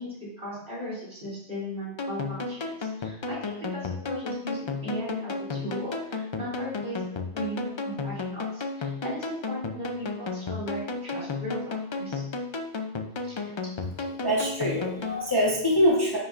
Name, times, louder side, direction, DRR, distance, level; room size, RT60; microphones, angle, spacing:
voice 1, 0.0-7.1 7.3-12.2 13.2-13.3 13.9-14.1, equal, 50° right, -7 dB, 3.3 m, -37 dB
sound 1, 2.0-15.2, left 3 dB, 50° left, 0.3 m, -33 dB
voice 2, 14.2-16.2, equal, 20° left, -6 dB, 1.2 m, -24 dB
9.6 x 5.5 x 2.5 m, 0.77 s
omnidirectional pair, 1.2 m